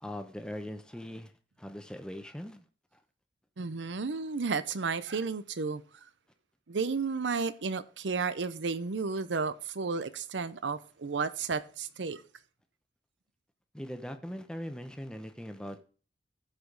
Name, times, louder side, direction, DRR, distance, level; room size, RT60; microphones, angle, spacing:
voice 1, 0.0-1.3 1.6-2.6 13.7-15.8, equal, 5° left, 0.9 m, -40 dB
voice 2, 3.6-5.8 6.7-12.2, right 4 dB, 85° right, 0.7 m, -32 dB
14.5 x 5.1 x 3.9 m
head